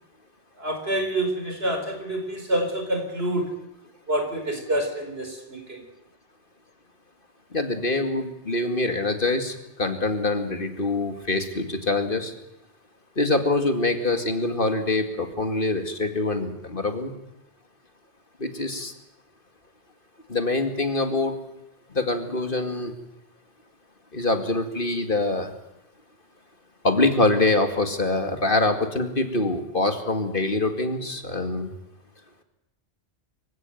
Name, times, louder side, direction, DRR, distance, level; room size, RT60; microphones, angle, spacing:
voice 1, 0.6-3.5 4.1-5.8, right 1 dB, 65° right, 5 dB, 4.9 m, -27 dB
voice 2, 7.5-9.5 9.8-12.3 13.2-17.1 18.4-18.9 20.3-21.3 22.0-22.9 24.1-25.5 26.8-31.7, left 2 dB, 50° left, 6 dB, 2.5 m, -24 dB
26.0 x 16.0 x 9.3 m, 0.89 s
omnidirectional pair, 1.1 m